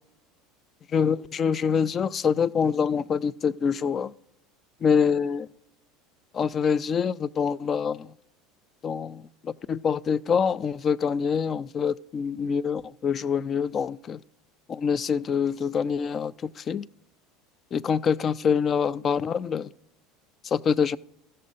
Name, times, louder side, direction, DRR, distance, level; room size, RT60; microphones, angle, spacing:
voice 1, 0.9-4.1 4.8-5.5 6.3-8.1 8.8-14.2 14.7-16.9 17.7-19.7 20.4-21.0, left 6 dB, 35° left, 0.3 m, -25 dB
14.0 x 6.6 x 4.0 m
hypercardioid pair, 75°, 0 cm